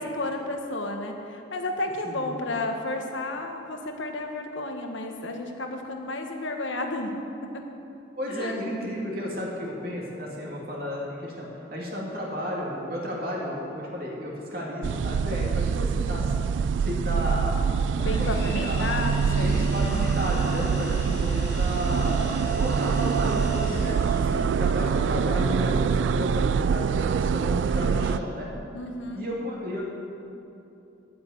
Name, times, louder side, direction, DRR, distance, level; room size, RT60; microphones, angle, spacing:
voice 1, 0.0-7.1 7.4-7.6 8.3-8.8 18.0-20.1 24.3-24.7 28.7-29.3, left 2 dB, 80° left, 3 dB, 1.4 m, -32 dB
voice 2, 8.2-16.3 16.8-17.6 17.9-18.9 19.4-22.2 22.6-24.1 24.5-28.5 29.1-29.8, equal, 50° right, -3 dB, 2.6 m, -33 dB
sound 1, 14.8-28.2, right 6 dB, 75° right, 0.3 m, -25 dB
sound 2, 18.0-24.7, left 1 dB, 15° left, 2.2 m, -42 dB
10.5 x 8.7 x 8.7 m, 2.8 s
head